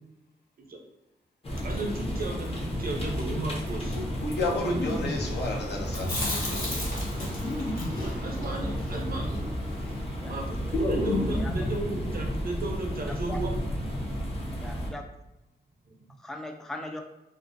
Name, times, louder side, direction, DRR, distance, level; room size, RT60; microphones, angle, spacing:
sound 1, 1.4-14.9, equal, 30° left, 0.7 m, -32 dB
voice 1, 1.6-4.0 4.6-4.8 8.0-9.3 10.1-10.6 10.9-13.6 15.9-16.0, right 2 dB, 55° right, 2 dB, 0.6 m, -34 dB
voice 2, 3.9-6.9, left 2 dB, 70° left, -1 dB, 0.6 m, -32 dB
sound 2, 4.7-5.3 6.2-6.3 7.3-8.1 8.9-9.1 9.4-9.9 11.1-11.8 12.1-12.7, left 1 dB, 85° left, 1.0 m, -34 dB
Chewing mastication, 5.9-10.0 10.3-10.4 10.7-11.5, left 1 dB, 50° left, 1.2 m, -32 dB
voice 3, 13.1-13.4 14.6-15.1 16.2-17.0, left 1 dB, ahead, 4 dB, 0.3 m, -39 dB
2.4 x 2.1 x 2.5 m, 0.97 s
cardioid pair, 65°, 18 cm